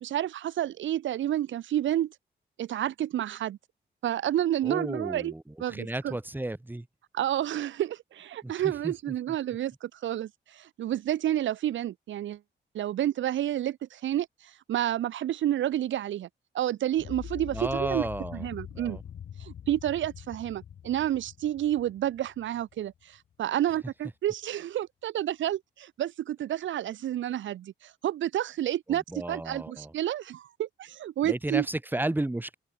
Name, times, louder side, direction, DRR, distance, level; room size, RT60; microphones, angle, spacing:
voice 1, 0.0-2.1 2.6-3.6 4.0-5.3 5.6-6.1 7.1-12.4 12.7-16.3 16.5-18.1 18.3-19.0 19.4-29.0 29.3-31.7, right 12 dB, 80° right, 0.7 m, -30 dB
voice 2, 4.6-5.4 5.7-6.9 8.4-8.5 8.8-8.9 17.5-18.5 18.7-19.0 28.9-29.9 31.2-32.5, right 1 dB, 10° right, 2.5 m, -33 dB
sound 1, 17.0-23.0, left 9 dB, 70° left, 2.1 m, -44 dB
open air
wide cardioid pair, 130°, 19 cm